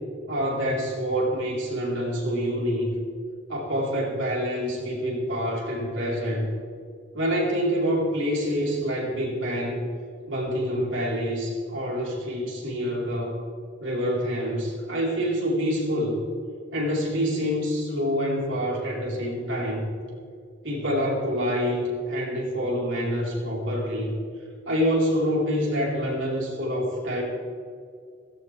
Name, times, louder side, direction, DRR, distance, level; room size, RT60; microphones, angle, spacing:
voice 1, 0.3-2.9 3.5-6.5 7.1-9.9 10.3-13.4 13.8-16.2 16.7-19.9 20.6-24.1 24.7-27.2, equal, 70° right, -4 dB, 4.4 m, -26 dB
17.0 x 16.0 x 3.5 m, 2.2 s
head